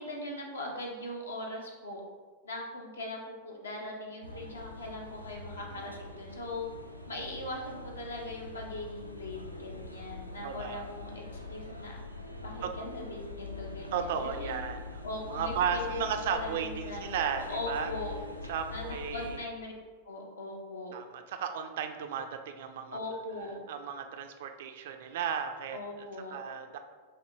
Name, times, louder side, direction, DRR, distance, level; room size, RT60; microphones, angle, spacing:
voice 1, 0.0-2.0 2.4-6.7 7.1-11.2 11.5-12.0 12.4-14.6 15.0-18.1 18.7-19.7 20.0-20.9 22.9-23.6 25.7-26.4, left 1 dB, 70° left, 0 dB, 0.7 m, -40 dB
sound 1, 4.2-19.4, left 3 dB, 90° left, 0.3 m, -43 dB
voice 2, 10.4-10.9 12.6-12.7 13.9-15.0 15.3-17.9 18.5-19.4 20.9-23.0 23.7-26.1 26.3-26.8, right 7 dB, 55° right, 7 dB, 0.3 m, -35 dB
5.1 x 2.6 x 2.9 m, 1.4 s
figure-of-eight pair, 90°, 0 cm